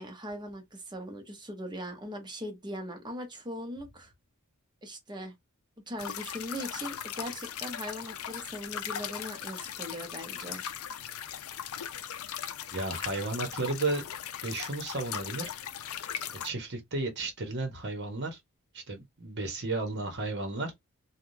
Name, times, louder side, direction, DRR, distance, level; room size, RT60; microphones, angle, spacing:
voice 1, 0.0-4.1 4.8-5.3 5.9-10.6, equal, 20° right, 0.9 m, -40 dB
sound 1, 6.0-16.5, left 9 dB, 70° left, 0.5 m, -38 dB
voice 2, 12.7-14.0 14.4-15.5 16.4-18.4 18.7-20.7, right 2 dB, 50° right, 1.1 m, -33 dB
3.5 x 2.4 x 2.7 m
head